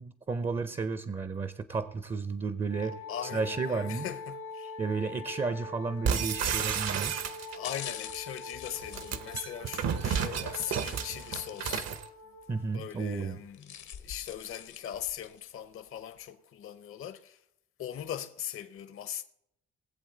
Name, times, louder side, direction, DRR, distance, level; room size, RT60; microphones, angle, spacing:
voice 1, 0.0-4.1 4.8-7.2 12.5-13.4, right 4 dB, 20° right, 0.5 m, -33 dB
Wind instrument woodwind instrument, 2.7-12.7, left 3 dB, 90° left, 2.4 m, -44 dB
voice 2, 2.8-4.8 7.5-11.9 12.7-17.4 17.8-19.2, left 10 dB, 45° left, 0.6 m, -40 dB
sound 1, 6.0-7.8 8.7-12.0, right 7 dB, 60° right, 0.8 m, -31 dB
sound 2, 7.4-9.9 10.6-12.1 12.4-12.5 13.3-15.5 16.0-16.1, left 9 dB, 70° left, 1.0 m, -46 dB
19.5 x 7.5 x 3.8 m
cardioid pair, 90°, 30 cm